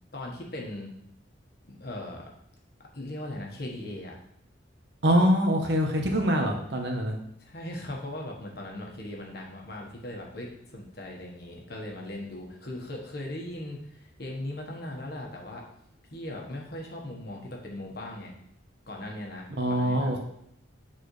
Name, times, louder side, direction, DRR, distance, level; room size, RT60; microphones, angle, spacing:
voice 1, 0.1-0.9 1.6-2.2 2.9-4.1 7.4-15.6 16.1-18.3 18.9-20.2, left 1 dB, 55° left, -1 dB, 1.4 m, -39 dB
voice 2, 5.0-7.2 19.6-20.2, equal, 60° right, 2 dB, 1.1 m, -24 dB
9.0 x 4.2 x 3.2 m, 0.71 s
head